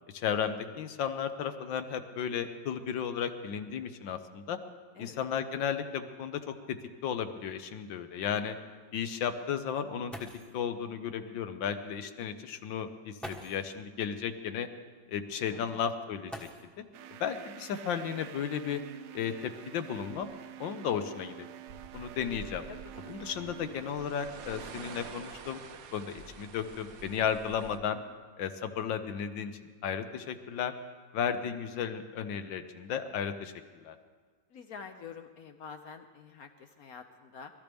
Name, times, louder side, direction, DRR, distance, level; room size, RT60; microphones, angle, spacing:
voice 1, 0.1-4.6 5.0-6.8 7.0-8.5 8.9-10.1 10.5-14.7 15.1-16.3 16.8-16.9 17.2-18.8 19.1-20.3 20.6-21.5 21.9-22.6 23.0-25.6 25.9-28.0 28.4-30.7 31.1-33.5 33.8-34.0, left 8 dB, 80° left, 8 dB, 1.5 m, -34 dB
sound 1, 10.1-10.7 11.9-12.0 13.2-13.8 16.2-17.0 18.4-18.5 19.2-20.7 21.4-21.7 22.1-22.5, equal, ahead, 1.0 m, -47 dB
voice 2, 15.3-15.8 22.7-23.2 34.5-37.5, left 6 dB, 65° left, 6 dB, 1.0 m, -48 dB
sound 2, 16.9-24.7, right 12 dB, 80° right, 0.7 m, -48 dB
sound 3, 21.7-27.8, right 6 dB, 60° right, 1.0 m, -48 dB
23.0 x 13.5 x 3.5 m, 1.5 s
omnidirectional pair, 2.0 m